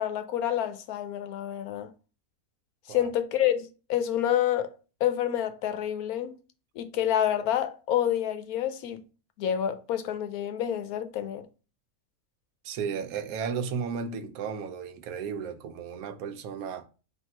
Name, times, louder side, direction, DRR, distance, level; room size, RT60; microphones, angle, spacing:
voice 1, 0.0-1.9 2.9-4.7 5.0-6.3 6.8-9.0 9.4-11.4, left 10 dB, 85° left, 1.1 m, -28 dB
voice 2, 12.6-16.9, right 6 dB, 80° right, 1.1 m, -34 dB
3.5 x 2.7 x 4.3 m
omnidirectional pair, 1.5 m